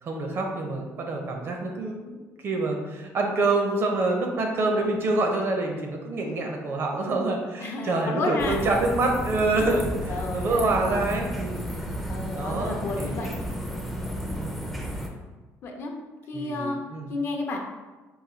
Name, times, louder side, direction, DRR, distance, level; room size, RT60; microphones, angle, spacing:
voice 1, 0.0-2.2 2.4-11.7 12.3-13.4 14.2-14.6 16.3-17.1, right 2 dB, 45° right, 2 dB, 0.7 m, -26 dB
voice 2, 7.6-8.6 10.1-10.6 12.1-13.3 15.6-15.9 16.3-16.8 17.1-17.6, left 3 dB, 45° left, 2 dB, 0.6 m, -31 dB
sound 1, 8.4-15.1, equal, ahead, 0.5 m, -32 dB
4.0 x 2.2 x 4.3 m, 1.2 s
cardioid pair, 145°, 6 cm